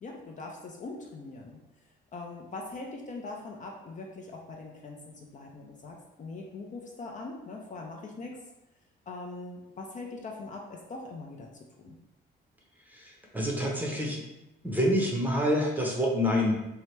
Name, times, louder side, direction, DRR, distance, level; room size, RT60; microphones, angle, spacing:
voice 1, 0.0-1.6 2.1-8.4 9.1-11.5 11.8-12.0, left 3 dB, 40° left, 0 dB, 0.4 m, -42 dB
voice 2, 12.9-14.2 14.6-16.6, equal, 10° right, -1 dB, 0.7 m, -27 dB
2.7 x 2.1 x 3.2 m, 0.94 s
cardioid pair, 90°, 20 cm